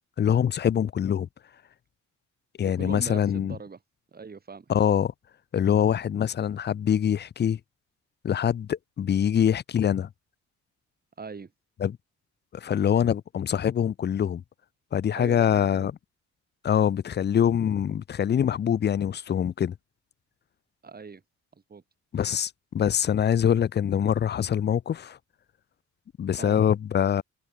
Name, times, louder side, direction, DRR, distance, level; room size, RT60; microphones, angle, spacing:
voice 1, 0.2-1.3 2.6-3.6 4.7-5.1 5.5-7.6 8.2-10.1 11.8-12.0 12.5-14.4 14.9-15.9 16.6-19.7 22.1-25.2 26.2-27.2, left 9 dB, 35° left, 0.5 m, -24 dB
voice 2, 2.6-3.8 4.1-4.7 11.2-11.5 15.2-15.9 20.8-21.2 21.7-21.8 26.4-26.6, right 5 dB, 30° right, 3.8 m, -40 dB
cardioid pair, 90°, 30 cm